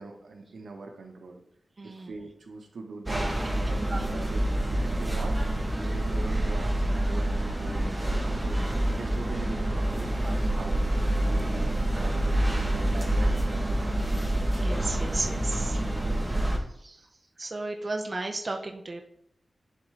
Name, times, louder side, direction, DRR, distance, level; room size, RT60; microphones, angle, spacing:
voice 1, 0.0-1.4 1.8-4.4 4.7-5.4 5.8-8.6 8.9-9.9 10.2-11.7 12.0-14.0, right 3 dB, 90° right, 3 dB, 1.1 m, -41 dB
voice 2, 1.8-2.1 3.9-4.1 14.5-15.8 16.2-16.5 16.8-17.1 17.4-19.0, right 2 dB, 35° right, 3 dB, 0.6 m, -34 dB
sound 1, 3.1-16.6, right 1 dB, 15° right, 0.9 m, -27 dB
11.0 x 3.7 x 3.3 m, 0.73 s
wide cardioid pair, 145°, 0 cm